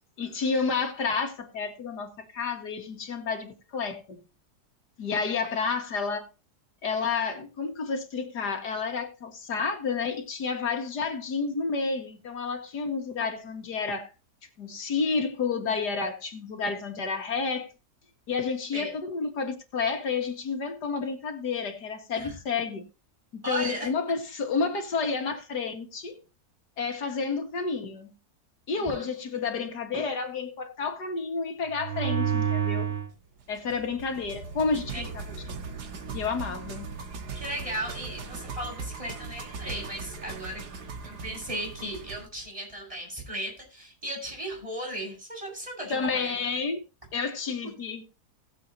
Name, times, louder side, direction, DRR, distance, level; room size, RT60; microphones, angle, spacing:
voice 1, 0.2-4.2 5.0-6.3 6.8-14.1 14.6-17.7 18.3-22.8 23.3-26.2 26.8-28.1 28.7-32.9 33.5-35.2 36.1-36.9 45.9-46.8 47.1-48.0, left 5 dB, 85° left, 2.4 m, -30 dB
voice 2, 23.4-23.9 28.8-29.0 34.9-35.0 37.3-40.6 41.0-46.4, right 1 dB, 20° right, 6.6 m, -36 dB
sound 1, 31.7-33.1 33.7-42.2, right 7 dB, 85° right, 2.0 m, -34 dB
20.5 x 7.6 x 2.9 m
omnidirectional pair, 1.7 m